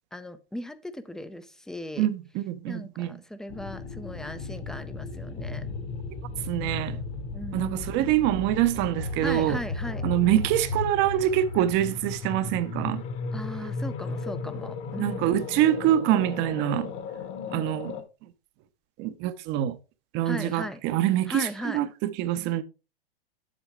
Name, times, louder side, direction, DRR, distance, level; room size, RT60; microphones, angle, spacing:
voice 1, 0.1-2.1 2.7-5.7 7.3-8.2 9.2-10.1 13.3-15.3 20.2-20.8 21.3-21.8, left 1 dB, ahead, 0.5 m, -37 dB
voice 2, 2.0-3.2 6.5-7.0 7.5-9.6 10.0-13.0 15.0-16.9 17.5-18.0 19.0-19.8 20.1-22.6, right 12 dB, 35° right, 0.7 m, -25 dB
sound 1, 3.5-18.0, left 4 dB, 40° left, 1.3 m, -35 dB
8.2 x 7.5 x 3.3 m
hypercardioid pair, 115°, 30 cm